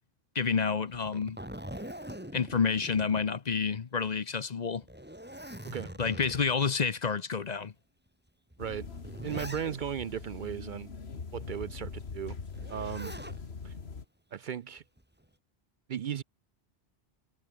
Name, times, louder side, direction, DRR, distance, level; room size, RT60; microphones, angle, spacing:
voice 1, 0.3-1.4 2.3-4.8 6.0-7.7, left 5 dB, 45° left, 0.9 m, -29 dB
Zipper (clothing), 0.9-3.8 4.2-4.3 4.8-6.7 7.4-7.5 8.5-10.1 12.5-13.4 14.8-15.3, equal, 10° right, 3.5 m, -43 dB
sound 1, 8.6-14.0, left 5 dB, 80° left, 2.0 m, -42 dB
voice 2, 9.2-10.9 11.3-12.4 12.7-13.1 13.6-13.7 14.3-14.8 15.9-16.2, right 9 dB, 60° right, 0.6 m, -36 dB
omnidirectional pair, 1.1 m